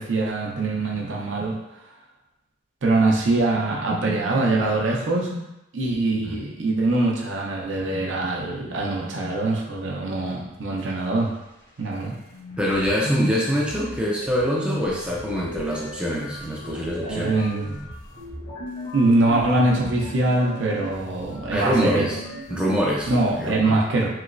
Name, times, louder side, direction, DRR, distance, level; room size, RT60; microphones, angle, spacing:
voice 1, 0.0-1.6 2.8-5.5 5.7-11.3 11.8-12.1 17.0-17.8 18.9-22.1 23.1-24.1, right 2 dB, 85° right, -2 dB, 0.6 m, -23 dB
sound 1, 12.0-12.1 12.3-23.5, equal, 85° left, 1.1 m, -35 dB
voice 2, 12.6-17.5 21.5-22.2 22.5-23.1 23.4-23.8, equal, 5° right, -5 dB, 0.3 m, -24 dB
3.0 x 3.0 x 2.5 m, 0.90 s
head